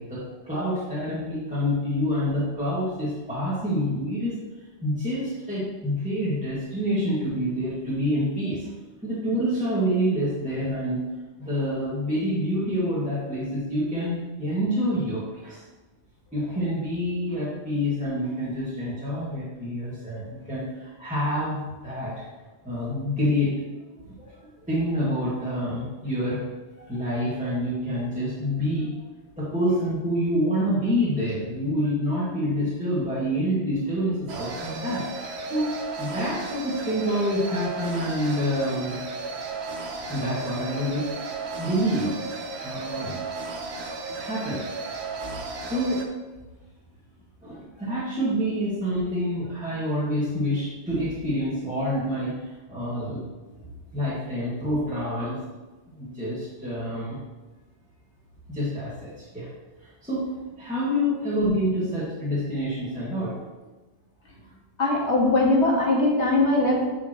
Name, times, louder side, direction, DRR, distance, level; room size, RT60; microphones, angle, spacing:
voice 1, 0.0-4.4 4.8-8.7 9.0-11.0 11.4-15.6 16.3-22.2 22.6-23.6 24.2-24.3 24.7-26.4 26.9-29.0 29.4-35.0 35.5-39.0 40.1-41.1 41.6-42.2 42.6-43.2 44.1-44.7 45.7-46.0 47.4-53.2 53.9-55.4 55.9-57.2 58.5-59.5 59.8-63.3, equal, 5° right, -11 dB, 1.9 m, -27 dB
sound 1, 34.3-46.0, right 3 dB, 70° right, 1.1 m, -34 dB
voice 2, 64.8-66.8, left 2 dB, 75° left, -3 dB, 2.0 m, -21 dB
10.5 x 5.0 x 3.1 m, 1.2 s
omnidirectional pair, 1.2 m